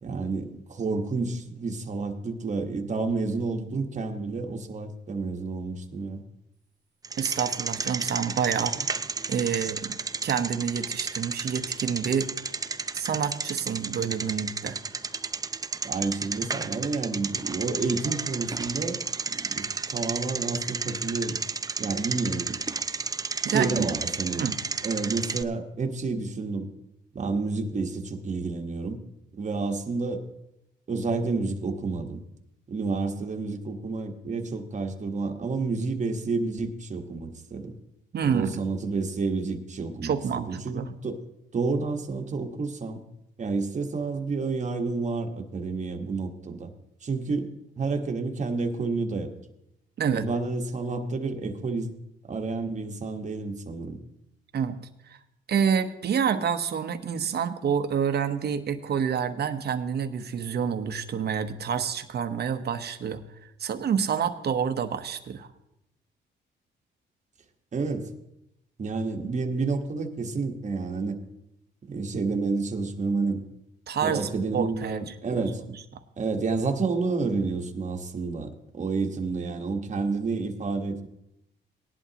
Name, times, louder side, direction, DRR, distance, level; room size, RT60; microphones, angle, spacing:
voice 1, 0.0-6.2 8.0-8.1 8.8-8.9 14.6-14.8 15.8-19.0 19.2-21.4 21.8-22.6 23.5-24.5 24.8-26.7 27.1-29.0 29.4-30.3 30.9-32.2 32.7-37.7 38.2-41.2 41.5-43.0 43.4-46.7 47.0-47.5 47.8-49.3 50.1-51.9 52.3-54.0 67.7-68.1 68.8-71.2 71.8-73.4 74.0-75.6 76.2-81.1, right 4 dB, 35° right, 4 dB, 1.4 m, -30 dB
Bicycle, 7.0-25.4, right 4 dB, 20° right, 0.5 m, -32 dB
voice 2, 7.2-8.9 9.3-12.3 12.9-14.8 23.4-23.9 24.4-24.6 38.1-38.6 40.0-40.9 50.0-50.2 54.5-54.8 55.5-63.2 63.6-65.5 73.9-75.4, right 7 dB, 55° right, 9 dB, 1.1 m, -28 dB
18.0 x 11.0 x 2.9 m, 0.85 s
cardioid pair, 90°, 20 cm